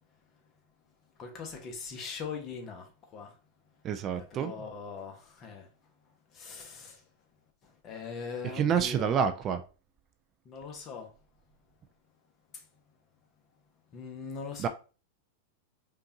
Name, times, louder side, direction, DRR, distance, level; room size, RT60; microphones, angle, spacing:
voice 1, 1.2-3.4 4.1-5.7 6.3-7.0 7.6-9.2 10.4-11.1 12.5-12.6 13.9-14.7, left 5 dB, 35° left, 1.1 m, -41 dB
voice 2, 3.8-4.5 8.5-9.6 14.6-14.7, right 7 dB, 35° right, 0.5 m, -28 dB
5.2 x 2.5 x 2.8 m
hypercardioid pair, 100°, 0 cm